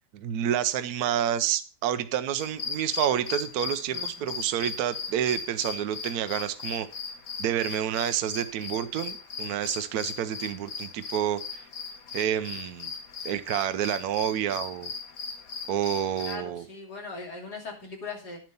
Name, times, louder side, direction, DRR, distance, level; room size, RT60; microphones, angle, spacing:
voice 1, 0.1-6.9 7.4-11.6 12.1-12.9 13.2-14.9 15.7-16.6, right 10 dB, 70° right, 11 dB, 1.2 m, -29 dB
sound 1, 2.4-16.4, left 5 dB, 65° left, 1.6 m, -38 dB
voice 2, 3.9-4.3 16.2-18.4, left 4 dB, 85° left, -1 dB, 3.5 m, -40 dB
10.5 x 7.7 x 5.3 m, 0.36 s
omnidirectional pair, 1.7 m